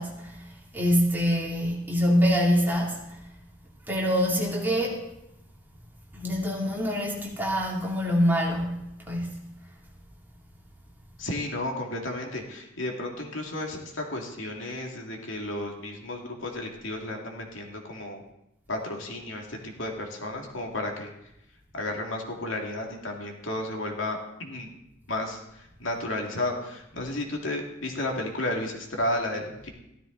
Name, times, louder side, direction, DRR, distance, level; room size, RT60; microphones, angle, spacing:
voice 1, 0.0-3.2 3.9-5.0 6.1-9.4, equal, 10° right, 2.9 m, -25 dB
voice 2, 11.2-18.2 18.7-21.1 21.7-24.7 25.1-29.7, left 1 dB, 85° left, 2.3 m, -33 dB
15.0 x 13.0 x 3.9 m
head